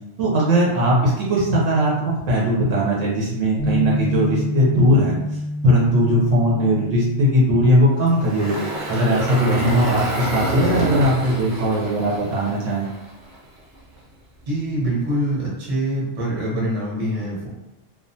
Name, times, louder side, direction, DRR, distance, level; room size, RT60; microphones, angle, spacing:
voice 1, 0.2-5.2 5.6-8.5 8.9-12.8, equal, 75° right, -5 dB, 1.0 m, -19 dB
Bass guitar, 3.6-9.8, left 1 dB, 5° left, 0.4 m, -29 dB
Engine, 8.1-13.3, right 2 dB, 55° right, 0.5 m, -27 dB
voice 2, 14.5-17.5, right 1 dB, 40° right, -5 dB, 0.9 m, -24 dB
2.4 x 2.2 x 2.6 m, 0.94 s
omnidirectional pair, 1.4 m